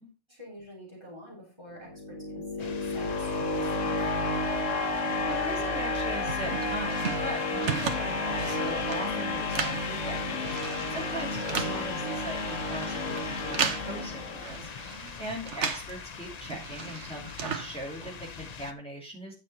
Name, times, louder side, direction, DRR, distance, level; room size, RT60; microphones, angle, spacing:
voice 1, 0.3-4.1 10.7-11.0 14.8-15.2, equal, 20° right, -3 dB, 4.4 m, -47 dB
sound 1, 1.8-14.8, left 2 dB, 90° left, 1.4 m, -31 dB
sound 2, 2.6-18.7, left 6 dB, 45° left, 0.6 m, -43 dB
voice 2, 5.3-19.3, right 1 dB, 5° left, -3 dB, 2.8 m, -40 dB
sound 3, 5.9-16.0 16.2-18.3, right 6 dB, 70° right, 1.3 m, -36 dB
9.9 x 6.3 x 4.2 m, 0.32 s
omnidirectional pair, 1.3 m